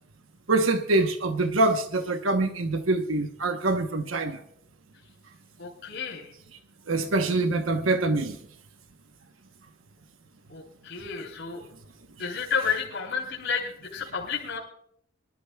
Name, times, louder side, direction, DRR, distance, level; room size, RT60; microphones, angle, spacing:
voice 1, 0.5-4.4 6.9-8.4, right 2 dB, 85° right, 1.0 m, -24 dB
voice 2, 5.6-6.3 10.5-11.6 12.2-14.6, left 6 dB, 60° left, 3.4 m, -31 dB
24.5 x 12.0 x 2.3 m
head